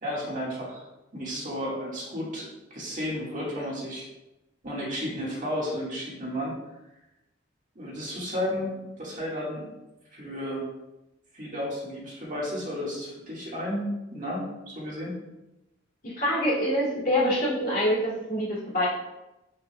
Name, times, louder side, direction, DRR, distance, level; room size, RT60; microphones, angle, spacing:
voice 1, 0.0-0.9 1.1-4.1 4.6-6.5 7.8-9.7 10.1-10.6 11.3-15.2, equal, 45° right, -4 dB, 1.7 m, -33 dB
voice 2, 16.0-18.9, equal, 50° left, -7 dB, 2.3 m, -25 dB
7.6 x 5.7 x 2.3 m, 0.96 s
head